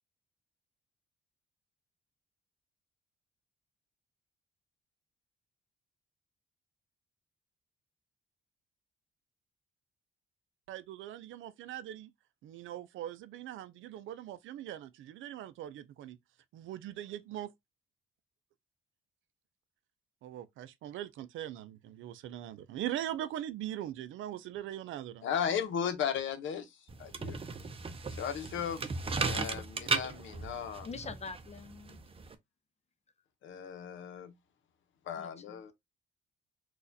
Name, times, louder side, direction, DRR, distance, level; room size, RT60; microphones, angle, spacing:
voice 1, 10.7-12.1 12.4-16.2 16.5-17.5 20.2-25.3, right 12 dB, 80° right, 0.5 m, -41 dB
voice 2, 25.2-26.7 27.0-27.4 28.2-28.8 29.2-30.9 33.4-34.3 35.1-35.7, left 8 dB, 75° left, 0.8 m, -35 dB
sound 1, 26.9-32.3, right 4 dB, 30° right, 0.6 m, -36 dB
voice 3, 30.8-32.0 35.2-35.7, left 4 dB, 35° left, 0.6 m, -45 dB
4.0 x 2.4 x 2.6 m
cardioid pair, 90°, 20 cm